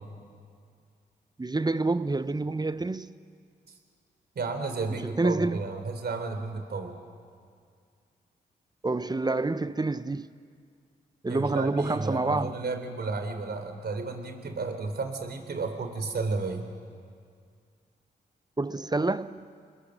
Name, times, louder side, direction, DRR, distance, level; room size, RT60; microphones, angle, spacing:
voice 1, 1.4-3.1 5.0-5.6 8.8-10.3 11.2-12.5 18.6-19.5, right 2 dB, 20° right, 0.8 m, -27 dB
voice 2, 4.4-7.0 11.3-16.7, right 3 dB, 55° right, 3.7 m, -33 dB
28.0 x 21.5 x 6.6 m
supercardioid pair, 45°, 20 cm